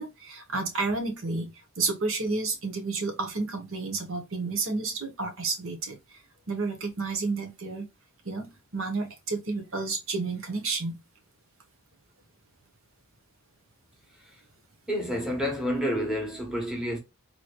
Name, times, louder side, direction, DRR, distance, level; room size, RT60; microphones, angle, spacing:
voice 1, 0.0-1.5 1.8-6.0 6.5-7.9 8.2-11.0, right 3 dB, 80° right, 1.0 m, -31 dB
voice 2, 14.9-17.0, equal, 5° right, 1.2 m, -29 dB
3.9 x 3.1 x 2.3 m
head